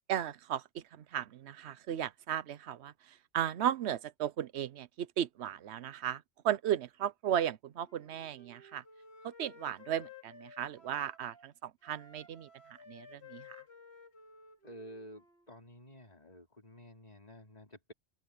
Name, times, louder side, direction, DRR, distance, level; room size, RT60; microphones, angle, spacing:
voice 1, 0.0-8.8 9.2-12.5 12.9-13.6, right 10 dB, 85° right, 1.0 m, -36 dB
Wind instrument woodwind instrument, 7.8-11.5 11.8-15.5, left 4 dB, 75° left, 2.9 m, -55 dB
voice 2, 14.6-17.9, equal, 40° left, 3.3 m, -51 dB
open air
omnidirectional pair, 1.1 m